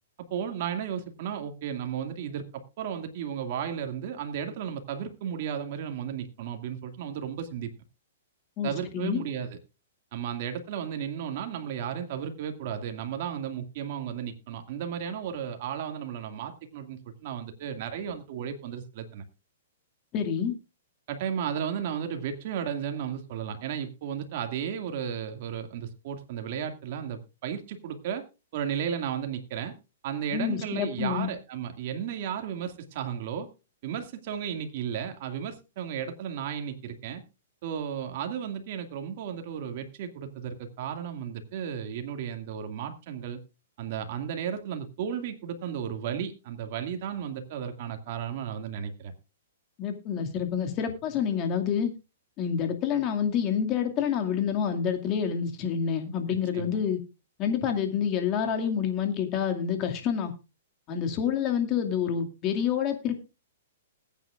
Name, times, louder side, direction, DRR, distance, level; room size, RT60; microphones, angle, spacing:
voice 1, 0.3-7.7 8.6-9.6 10.1-19.2 21.1-28.2 28.5-29.7 30.0-33.5 33.8-37.2 37.6-43.4 43.8-49.1 56.5-56.8, right 8 dB, 50° right, 6 dB, 2.2 m, -34 dB
voice 2, 8.6-9.2 20.1-20.5 30.3-31.3 49.8-51.9 52.4-57.0 57.4-60.3 60.9-63.1, left 8 dB, 30° left, 4 dB, 2.3 m, -28 dB
20.5 x 9.2 x 2.5 m, 0.29 s
hypercardioid pair, 140°, 0 cm